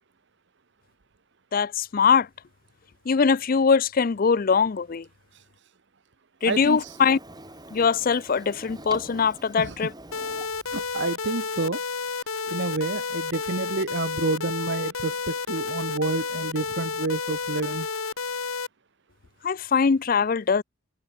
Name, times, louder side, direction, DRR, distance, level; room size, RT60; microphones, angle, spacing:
voice 1, 1.5-2.3 3.1-5.0 6.4-7.2 7.7-9.9 19.4-20.6, left 5 dB, 40° left, 0.4 m, -22 dB
Printer, 6.4-11.0, right 1 dB, 20° right, 6.8 m, -45 dB
voice 2, 6.4-7.0 9.6-9.9 10.7-11.8 12.5-17.9, right 3 dB, 55° right, 0.9 m, -29 dB
sound 1, 10.1-18.7, left 5 dB, 75° left, 2.0 m, -31 dB
head